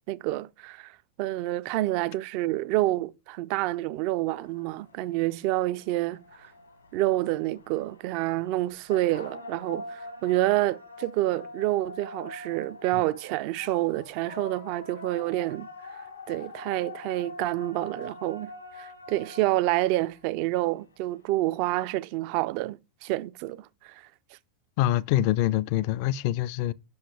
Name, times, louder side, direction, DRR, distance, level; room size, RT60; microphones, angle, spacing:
voice 1, 0.1-6.5 6.9-15.7 16.3-18.5 18.8-24.0, right 16 dB, 45° right, 0.3 m, -28 dB
sound 1, 4.3-21.9, left 2 dB, 80° left, 1.2 m, -45 dB
voice 2, 24.8-26.7, left 14 dB, 45° left, 0.3 m, -25 dB
6.9 x 5.6 x 3.3 m
figure-of-eight pair, 90°, 0 cm